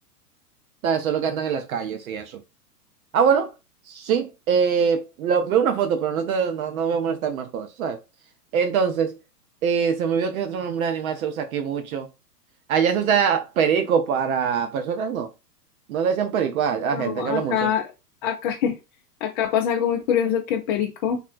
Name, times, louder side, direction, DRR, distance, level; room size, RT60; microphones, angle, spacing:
voice 1, 0.8-2.4 3.1-3.5 3.9-8.0 8.5-9.2 9.6-12.1 12.7-15.3 15.9-17.7, right 7 dB, 60° right, 0.6 m, -23 dB
voice 2, 16.9-17.9 18.2-18.8 19.2-21.2, left 8 dB, 35° left, 0.4 m, -24 dB
3.5 x 2.3 x 2.4 m
hypercardioid pair, 120°, 48 cm